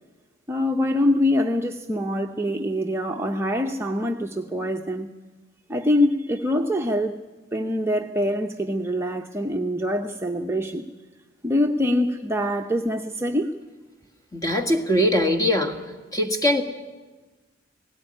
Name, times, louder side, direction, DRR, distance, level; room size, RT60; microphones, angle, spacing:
voice 1, 0.5-5.1 5.7-7.2 7.5-10.9 11.4-13.5, left 1 dB, 15° right, 2 dB, 0.7 m, -24 dB
voice 2, 14.3-15.8 16.1-16.6, left 1 dB, 20° left, 4 dB, 1.8 m, -21 dB
17.5 x 17.0 x 9.9 m, 1.2 s
head